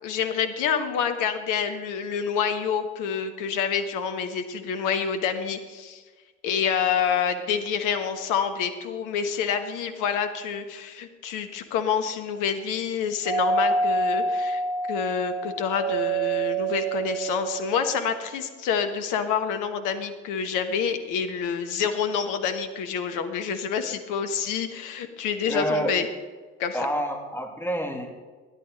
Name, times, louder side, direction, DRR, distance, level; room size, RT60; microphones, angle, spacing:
voice 1, 0.0-6.0 6.4-14.6 14.9-26.1 26.6-26.9, left 7 dB, 55° left, 8 dB, 1.4 m, -27 dB
Doorbell, 13.3-18.1, right 3 dB, 15° right, 1.8 m, -27 dB
voice 2, 25.5-25.9 26.7-28.1, equal, 5° left, 0 dB, 2.8 m, -27 dB
17.0 x 11.0 x 4.0 m, 1.4 s
figure-of-eight pair, 55°, 36 cm